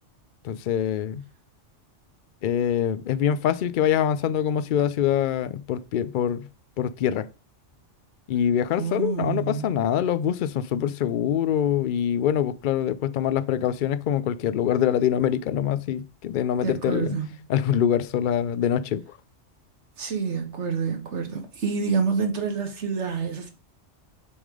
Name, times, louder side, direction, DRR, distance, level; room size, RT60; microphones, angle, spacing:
voice 1, 0.4-1.2 2.4-6.5 6.8-7.3 8.3-17.2 17.5-19.0, left 9 dB, 60° left, 0.5 m, -24 dB
voice 2, 8.8-9.7 16.6-17.4 20.0-23.5, right 5 dB, 70° right, 1.5 m, -28 dB
7.1 x 3.6 x 4.8 m
omnidirectional pair, 1.3 m